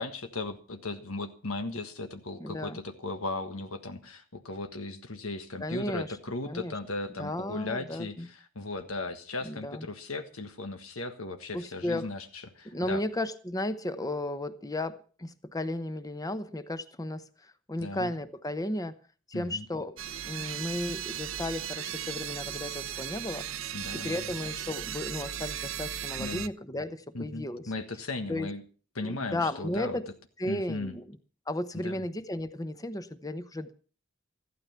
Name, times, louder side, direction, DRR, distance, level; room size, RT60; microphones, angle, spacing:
voice 1, 0.0-13.0 17.8-18.1 19.3-19.7 23.7-24.3 26.2-26.5 27.1-28.6 28.9-30.0 30.5-30.9 31.7-32.1, left 2 dB, 90° left, 7 dB, 1.5 m, -37 dB
voice 2, 2.4-2.8 5.6-6.1 6.4-6.7 7.2-8.3 9.4-9.9 11.5-12.1 12.7-18.9 19.3-20.0 20.2-23.5 23.9-27.7 28.3-28.5 29.0-30.0 30.4-31.2 31.5-33.7, left 1 dB, 15° left, 12 dB, 0.9 m, -34 dB
sound 1, 20.0-26.5, right 10 dB, 70° right, 0.8 m, -37 dB
15.0 x 12.5 x 5.8 m, 0.38 s
head